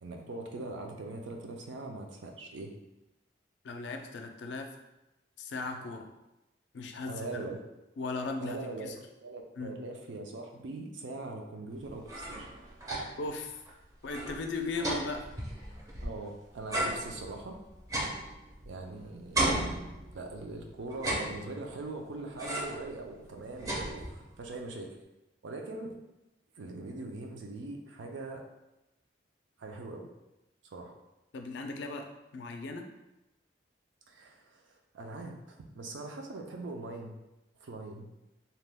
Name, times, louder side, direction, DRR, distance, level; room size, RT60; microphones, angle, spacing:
voice 1, 0.0-2.7 7.1-7.6 8.4-8.9 9.2-12.5 16.0-17.6 18.6-19.4 20.1-25.0 25.4-25.9 26.6-28.4 29.6-30.1 30.7-30.9 34.1-37.2 37.6-38.1, right 2 dB, 80° right, 2 dB, 0.5 m, -41 dB
voice 2, 3.6-4.7 5.4-6.1 6.7-7.5 8.0-9.0 9.6-9.7 13.2-13.6 14.0-15.3 31.3-32.9, left 3 dB, 70° left, 4 dB, 0.4 m, -37 dB
sound 1, 11.9-13.3 13.7-13.8 14.0-16.3 16.7-18.9 19.3-20.4 20.9-21.8 22.4-22.9 23.2-24.4, right 1 dB, 20° right, 0.4 m, -35 dB
2.8 x 2.2 x 3.3 m, 0.94 s
head